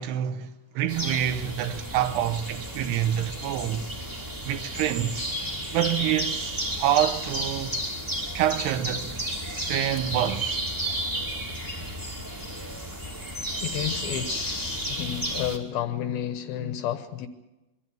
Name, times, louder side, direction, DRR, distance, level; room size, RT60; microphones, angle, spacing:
voice 1, 0.0-3.9 4.4-5.3 5.7-7.8 8.3-9.2 9.5-10.6, right 11 dB, 75° right, 2.7 m, -27 dB
sound 1, 0.9-15.6, right 1 dB, 10° right, 0.9 m, -32 dB
voice 2, 13.6-17.3, left 10 dB, 70° left, 2.5 m, -31 dB
24.0 x 13.5 x 9.1 m
omnidirectional pair, 5.2 m